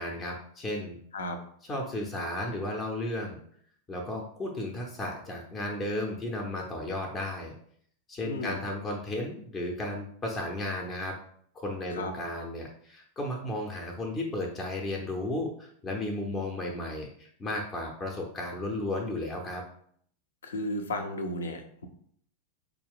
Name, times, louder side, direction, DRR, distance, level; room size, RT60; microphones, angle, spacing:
voice 1, 0.0-1.0 1.7-3.4 3.9-7.5 8.1-11.2 11.5-19.6, left 1 dB, 20° left, 1 dB, 0.6 m, -34 dB
voice 2, 8.2-8.6 11.9-12.1 20.4-21.9, left 1 dB, 65° left, 6 dB, 0.6 m, -34 dB
4.4 x 2.3 x 3.6 m, 0.62 s
figure-of-eight pair, 90°, 0 cm